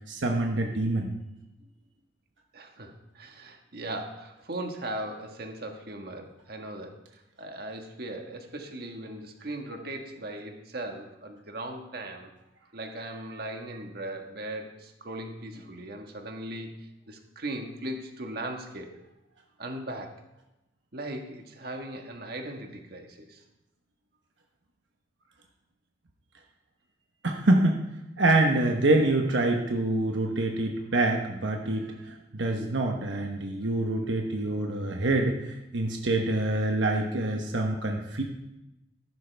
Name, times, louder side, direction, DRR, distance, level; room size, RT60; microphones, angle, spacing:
voice 1, 0.1-1.1 27.2-27.8 28.2-38.2, right 2 dB, 80° right, 2 dB, 1.1 m, -26 dB
voice 2, 2.5-6.9 7.4-12.3 12.7-18.9 19.6-20.2 20.9-23.4, right 1 dB, 55° right, 3 dB, 1.5 m, -38 dB
14.0 x 12.0 x 3.4 m, 0.95 s
head